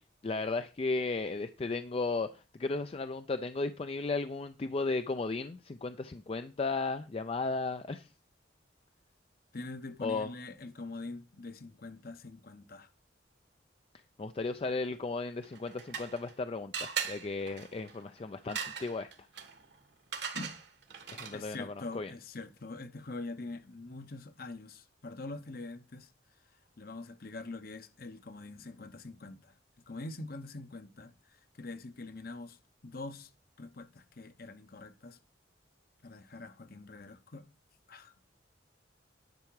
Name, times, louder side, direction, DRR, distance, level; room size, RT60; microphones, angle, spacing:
voice 1, 0.0-8.1 10.0-10.3 14.2-19.1 21.1-22.1, left 3 dB, 30° left, 0.4 m, -35 dB
voice 2, 9.5-12.9 20.3-20.5 21.3-26.1 26.8-29.5 29.9-31.1 31.6-32.6 32.8-33.3 33.6-35.2 36.0-37.4 37.9-38.1, left 2 dB, 50° left, 0.9 m, -44 dB
sound 1, 15.4-16.4 16.7-21.6, right 7 dB, 65° right, 1.4 m, -40 dB
10.5 x 5.7 x 4.7 m
head